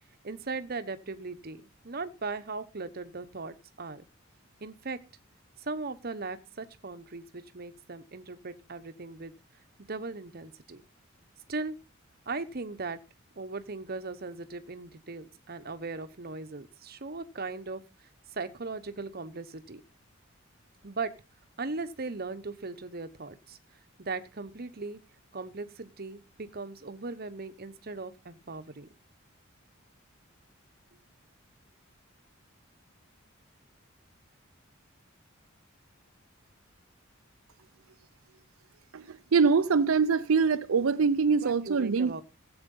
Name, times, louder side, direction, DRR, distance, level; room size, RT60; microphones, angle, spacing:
voice 1, 0.2-4.0 4.6-5.0 5.6-9.3 9.9-10.8 11.5-11.8 12.3-13.0 13.4-17.8 18.3-19.8 20.8-21.1 21.6-23.6 24.0-25.0 25.3-28.9 41.3-42.2, right 3 dB, 50° right, 1.0 m, -38 dB
voice 2, 38.9-42.2, right 5 dB, 80° right, 0.5 m, -24 dB
15.0 x 8.0 x 5.5 m
head